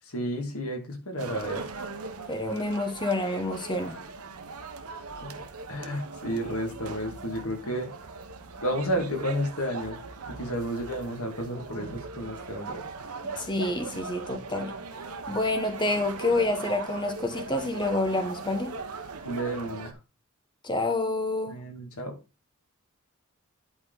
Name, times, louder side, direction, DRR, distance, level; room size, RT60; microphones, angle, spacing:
voice 1, 0.1-1.7 5.2-5.4 5.7-7.9 8.6-10.0 10.3-12.8 19.2-19.9 21.5-22.2, equal, 75° left, 2.3 m, -31 dB
sound 1, 1.2-19.9, right 4 dB, 80° right, 1.1 m, -39 dB
voice 2, 2.3-4.0 13.2-14.7 15.3-18.7 20.6-21.6, left 2 dB, 20° left, 1.3 m, -28 dB
11.0 x 4.5 x 4.1 m
head